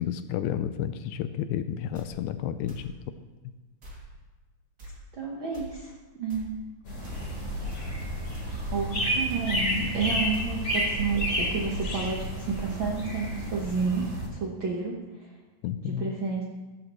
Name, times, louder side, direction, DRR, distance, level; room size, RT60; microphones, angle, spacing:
voice 1, 0.0-2.9 15.6-16.1, left 10 dB, 80° left, 11 dB, 2.3 m, -31 dB
sound 1, 1.9-2.1 2.7-2.9 3.8-4.0 4.8-4.9 5.5-5.7 6.3-6.5 7.0-7.2 7.7-7.9 8.3-8.5 9.3-9.5 9.7-9.9 10.3-10.5, equal, 30° right, 2.3 m, -45 dB
voice 2, 5.1-5.9 6.2-6.5 8.7-14.1 14.3-15.3 15.8-16.4, right 5 dB, 80° right, -2 dB, 1.1 m, -30 dB
sound 2, 6.9-14.3, equal, 30° left, 4.1 m, -31 dB
sound 3, 7.0-14.2, right 1 dB, 65° right, 2.1 m, -39 dB
15.5 x 13.0 x 3.1 m, 1.2 s
omnidirectional pair, 4.2 m